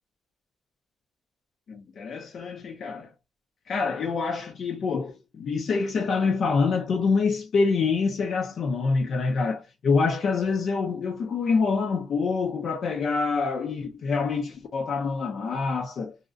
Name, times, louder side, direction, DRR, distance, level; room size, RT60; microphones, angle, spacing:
voice 1, 1.7-3.1 3.7-16.2, left 4 dB, 55° left, 0.4 m, -26 dB
2.5 x 2.0 x 2.5 m
cardioid pair, 100°, 0 cm